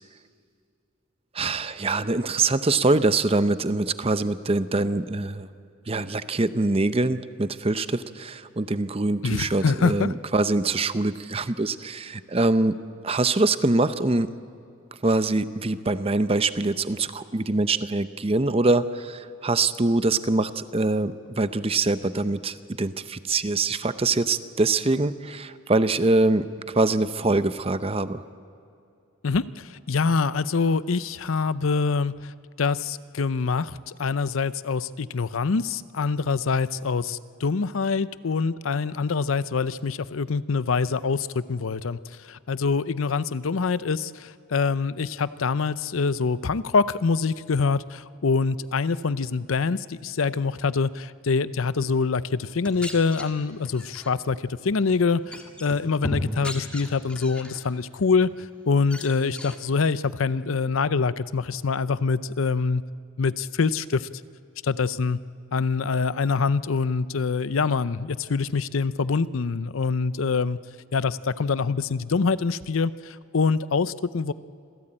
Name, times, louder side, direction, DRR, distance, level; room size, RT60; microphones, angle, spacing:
voice 1, 1.3-5.5 5.9-12.7 13.0-14.3 15.0-26.5 26.7-28.2, right 2 dB, 30° right, 12 dB, 0.7 m, -24 dB
voice 2, 9.2-10.1 29.2-32.3 32.6-62.8 63.2-64.1 64.6-65.2 65.5-70.6 70.9-74.3, left 4 dB, 85° left, 16 dB, 0.6 m, -25 dB
sound 1, 52.5-54.1 54.7-55.0 55.3-57.6 58.0-58.5 58.8-59.6, left 1 dB, 5° left, 2.1 m, -36 dB
26.5 x 16.5 x 8.8 m, 2.5 s
head